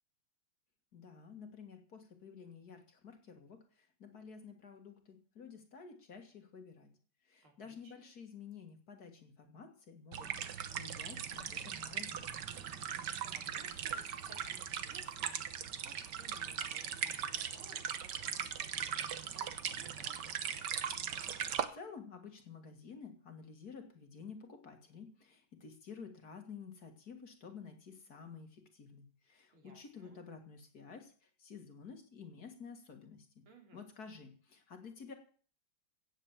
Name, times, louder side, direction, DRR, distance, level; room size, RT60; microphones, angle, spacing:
voice 1, 0.9-6.9 7.2-12.4 21.7-33.4 33.7-35.1, left 5 dB, 45° left, 5 dB, 2.2 m, -51 dB
voice 2, 7.4-8.1 13.1-15.4 15.8-20.6 29.5-30.2 33.5-33.8, right 3 dB, 80° right, 3 dB, 3.8 m, -61 dB
sound 1, 10.1-21.6, right 8 dB, 60° right, 1.5 m, -39 dB
16.0 x 8.0 x 7.2 m, 0.43 s
omnidirectional pair, 2.3 m